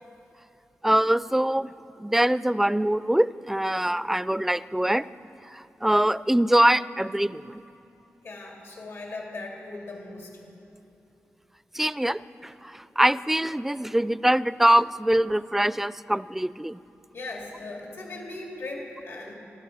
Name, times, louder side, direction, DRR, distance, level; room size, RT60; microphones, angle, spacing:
voice 1, 0.8-1.7 2.0-5.0 5.5-7.6 11.7-16.8, right 1 dB, 5° right, 17 dB, 0.3 m, -23 dB
voice 2, 8.2-10.3 17.1-19.3, left 2 dB, 85° left, -1 dB, 2.4 m, -38 dB
22.5 x 13.0 x 4.8 m, 2.8 s
cardioid pair, 75°, 5 cm